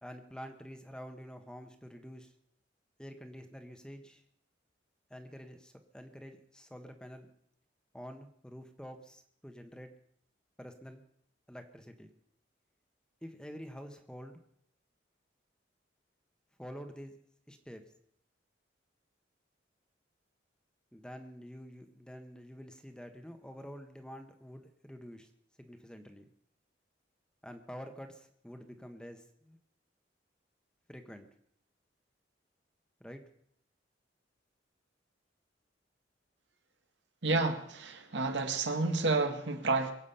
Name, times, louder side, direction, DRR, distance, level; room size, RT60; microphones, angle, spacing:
voice 1, 0.0-2.3 3.0-4.2 5.1-7.3 7.9-9.9 10.6-11.0 11.5-12.1 13.2-14.4 16.6-17.2 17.5-17.8 20.9-25.3 25.6-26.3 27.4-29.6 30.9-31.3 33.0-33.2, equal, 5° left, 1.2 m, -48 dB
voice 2, 37.2-39.9, right 3 dB, 75° right, 1.9 m, -30 dB
23.0 x 8.4 x 5.6 m
head